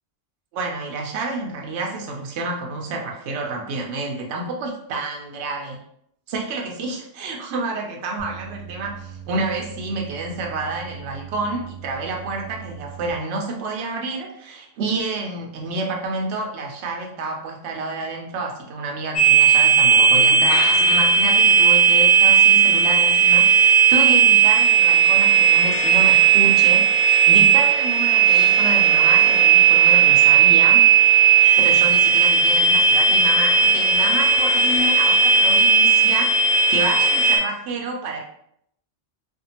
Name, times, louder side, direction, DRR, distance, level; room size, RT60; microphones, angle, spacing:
voice 1, 0.5-5.8 6.3-30.8 31.6-38.2, right 2 dB, 75° right, 0 dB, 0.8 m, -29 dB
sound 1, 8.2-13.1, right 8 dB, 50° right, 0.6 m, -39 dB
sound 2, 19.2-37.4, right 6 dB, 70° left, 0.9 m, -15 dB
2.6 x 2.4 x 2.8 m, 0.71 s
omnidirectional pair, 1.2 m